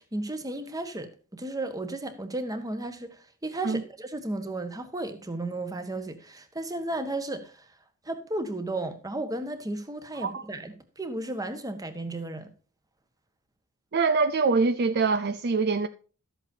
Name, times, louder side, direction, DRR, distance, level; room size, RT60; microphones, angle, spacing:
voice 1, 0.0-7.7 8.0-12.5, right 2 dB, 15° right, 1.3 m, -34 dB
voice 2, 13.9-15.9, right 4 dB, 50° right, 0.5 m, -24 dB
13.0 x 7.9 x 2.7 m
head